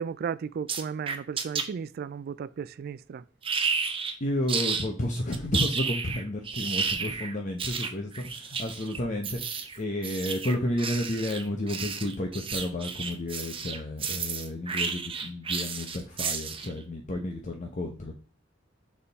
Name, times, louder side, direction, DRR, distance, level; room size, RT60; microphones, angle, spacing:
voice 1, 0.0-3.2, right 7 dB, 55° right, 0.3 m, -35 dB
sound 1, 0.7-1.6 3.4-4.1 4.5-4.9 5.3-16.8, right 5 dB, 30° right, 0.7 m, -32 dB
voice 2, 4.2-18.1, left 1 dB, 40° left, 0.8 m, -31 dB
6.7 x 3.6 x 4.1 m
head